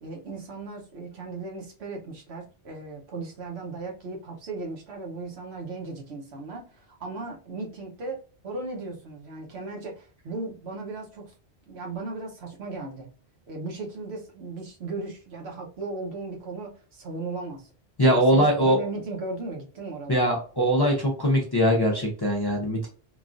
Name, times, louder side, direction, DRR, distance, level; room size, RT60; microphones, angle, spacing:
voice 1, 0.0-8.2 8.4-11.3 11.7-13.1 13.5-17.7 18.0-20.3, right 3 dB, 75° right, 1.1 m, -36 dB
voice 2, 18.0-18.8 20.1-22.9, equal, 30° left, 0.6 m, -21 dB
3.0 x 2.3 x 2.4 m
omnidirectional pair, 1.1 m